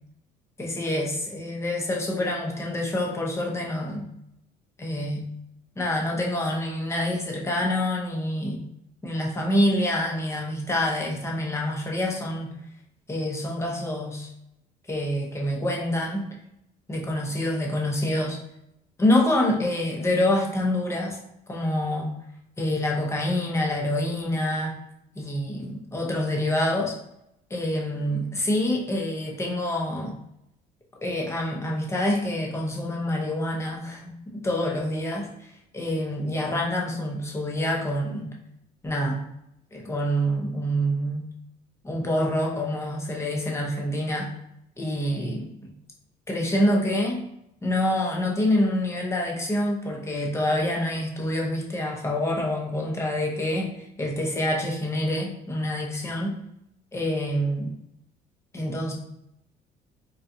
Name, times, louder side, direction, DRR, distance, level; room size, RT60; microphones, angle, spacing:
voice 1, 0.6-4.1 4.8-5.3 5.8-8.6 9.0-12.5 13.1-14.3 14.9-16.3 16.9-18.4 19.0-21.2 21.5-22.1 22.6-24.7 25.1-27.0 27.5-30.2 31.0-38.3 38.8-39.2 39.7-41.2 41.8-44.3 44.8-45.5 46.3-47.3 47.6-56.3 56.9-57.8 58.5-58.9, left 1 dB, 15° left, -1 dB, 0.8 m, -26 dB
3.9 x 2.3 x 2.7 m, 0.80 s
cardioid pair, 110°, 17 cm